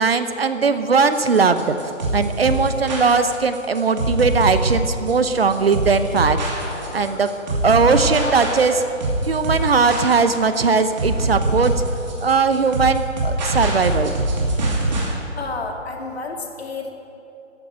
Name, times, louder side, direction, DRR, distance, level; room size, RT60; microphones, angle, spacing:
voice 1, 0.0-1.7 2.1-6.4 6.9-7.3 7.6-8.8 9.2-11.8 12.2-14.1, right 4 dB, 50° right, 10 dB, 0.9 m, -19 dB
sound 1, 1.1-15.1, right 2 dB, 35° right, 2.8 m, -23 dB
sound 2, 4.6-9.1 9.4-12.3, left 1 dB, 5° left, 1.0 m, -38 dB
voice 2, 15.4-16.9, left 3 dB, 55° left, 2 dB, 2.3 m, -30 dB
14.0 x 9.5 x 8.9 m, 2.8 s
hypercardioid pair, 170°, 38 cm